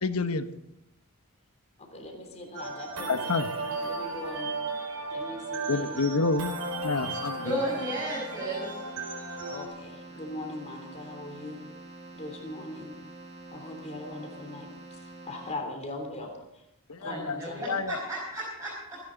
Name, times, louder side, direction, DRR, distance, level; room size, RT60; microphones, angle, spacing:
voice 1, 0.0-0.5 3.1-3.5 5.7-6.5 6.8-7.6 16.9-17.4 17.7-18.0, left 3 dB, 75° left, 10 dB, 1.1 m, -28 dB
voice 2, 1.8-4.5 5.1-6.1 9.5-11.6 12.1-13.0 13.5-16.6 17.0-17.6, left 1 dB, 30° left, 3 dB, 3.3 m, -40 dB
sound 1, 2.5-9.7, right 3 dB, 85° right, 4.5 m, -35 dB
Keyboard (musical), 6.9-15.9, right 2 dB, 50° right, 7.0 m, -47 dB
voice 3, 7.4-8.8 17.0-19.0, right 1 dB, 15° right, -6 dB, 5.4 m, -34 dB
28.0 x 10.5 x 4.0 m, 0.83 s
head